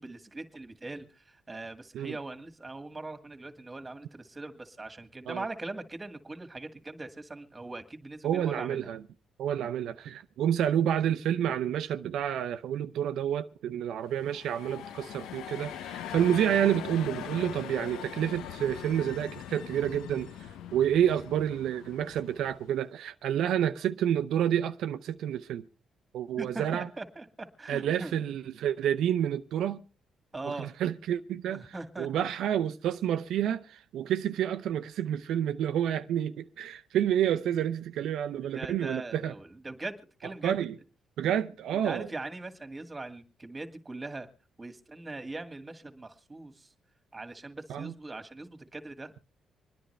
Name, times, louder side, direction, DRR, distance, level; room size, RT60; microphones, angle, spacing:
voice 1, 0.0-8.9 26.4-28.1 30.3-30.7 31.5-32.3 38.5-40.6 41.7-44.3 44.6-46.7 47.1-49.1, right 2 dB, 20° right, 2.0 m, -41 dB
voice 2, 8.2-9.0 9.4-25.6 26.1-26.9 27.7-29.8 30.4-31.7 32.0-39.3 40.4-40.7 41.2-42.1 47.7-47.9, right 10 dB, 80° right, 0.6 m, -29 dB
sound 1, 14.0-22.8, left 10 dB, 85° left, 0.7 m, -41 dB
26.0 x 10.0 x 3.3 m
cardioid pair, 90°, 0 cm